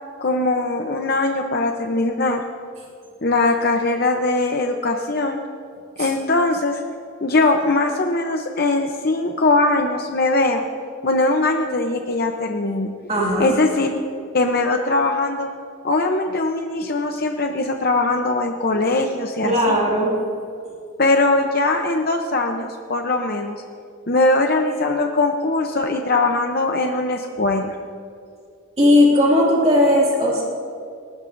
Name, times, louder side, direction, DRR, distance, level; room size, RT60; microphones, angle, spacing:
voice 1, 0.2-2.4 3.2-5.4 6.0-6.8 7.2-10.6 11.0-12.9 13.4-13.9 14.3-15.5 15.8-19.8 21.0-23.6 24.1-27.8, left 2 dB, 45° left, 3 dB, 0.7 m, -21 dB
voice 2, 13.1-13.5 19.4-20.2 28.8-30.4, left 1 dB, 30° right, -4 dB, 2.2 m, -17 dB
27.5 x 12.5 x 2.6 m, 2.4 s
head